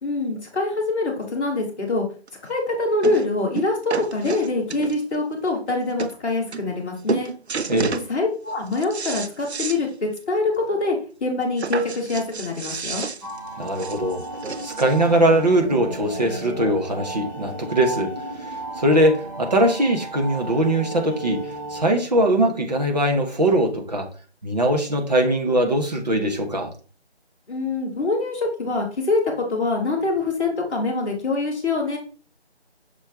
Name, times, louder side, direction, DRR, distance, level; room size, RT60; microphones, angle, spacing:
voice 1, 0.0-2.0 2.4-7.3 8.1-13.1 27.5-32.0, left 3 dB, 10° left, -9 dB, 1.3 m, -24 dB
sound 1, 2.3-2.4 3.0-3.3 3.5-5.2 5.7-5.8 6.0-6.2 6.5-6.8 7.1-8.1 8.5-9.8 10.2-10.3 10.6-10.7 11.6-15.0 15.9-16.0, right 5 dB, 75° right, 0.6 m, -31 dB
sound 2, 13.2-22.0, right 1 dB, 15° right, 1.0 m, -34 dB
voice 2, 13.6-14.2 14.6-18.1 18.4-21.4 21.7-24.1 24.4-26.7, right 1 dB, 40° right, 2 dB, 1.2 m, -21 dB
6.6 x 4.6 x 3.5 m, 0.38 s
figure-of-eight pair, 160°, 33 cm